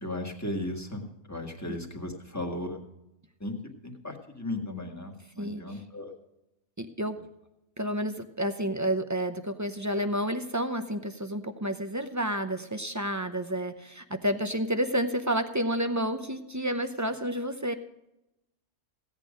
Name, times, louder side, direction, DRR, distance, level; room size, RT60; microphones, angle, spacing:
voice 1, 0.0-2.8 3.4-3.5 3.8-6.1, left 1 dB, 15° left, 2 dB, 1.6 m, -36 dB
voice 2, 6.8-7.2 7.8-17.7, equal, 20° right, 8 dB, 0.5 m, -30 dB
16.0 x 8.9 x 5.1 m, 0.89 s
omnidirectional pair, 1.3 m